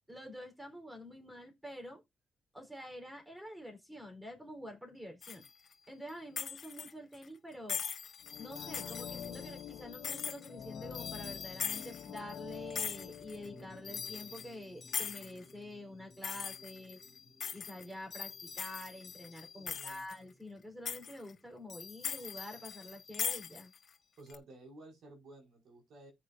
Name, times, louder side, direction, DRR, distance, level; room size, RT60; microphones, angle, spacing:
voice 1, 0.1-2.0 2.5-5.4 5.9-7.8 8.4-17.0 17.5-23.7, left 1 dB, 5° right, 4.0 m, -47 dB
sound 1, 5.2-5.7 6.1-6.2 6.4-7.2 7.5-13.5 13.8-15.5 16.2-20.1 20.8-21.3 21.7-23.9 24.3-24.4, left 7 dB, 45° left, 1.4 m, -41 dB
sound 2, 8.2-15.1 15.4-15.5, left 8 dB, 75° left, 1.7 m, -48 dB
sound 3, 13.3-20.6, left 1 dB, 30° left, 2.2 m, -59 dB
voice 2, 19.6-20.1 24.2-26.1, right 2 dB, 65° right, 5.4 m, -54 dB
14.0 x 8.7 x 2.6 m
cardioid pair, 110°, 0 cm